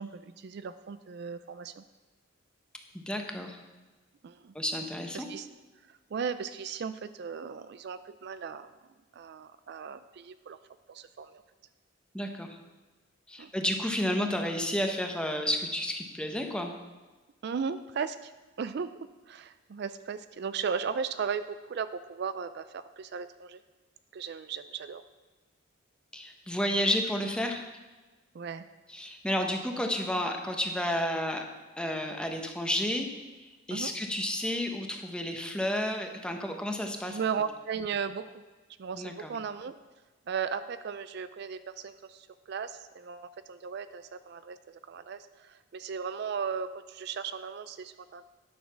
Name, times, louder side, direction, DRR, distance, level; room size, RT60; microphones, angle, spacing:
voice 1, 0.0-1.8 4.2-4.5 5.1-5.5 5.9-8.7 9.1-10.6 10.9-11.4 13.4-13.5 17.4-18.3 18.6-18.9 19.3-23.6 24.1-25.0 28.3-28.7 33.7-33.9 37.1-38.4 38.8-39.7 40.3-48.2, right 6 dB, 55° right, 12 dB, 0.4 m, -36 dB
voice 2, 2.9-3.6 4.5-5.3 12.1-12.6 13.3-16.7 26.1-27.6 28.9-31.4 31.8-33.1 33.7-37.2 38.9-39.3, left 1 dB, 5° left, 3 dB, 0.9 m, -31 dB
10.5 x 6.5 x 5.9 m, 1.2 s
head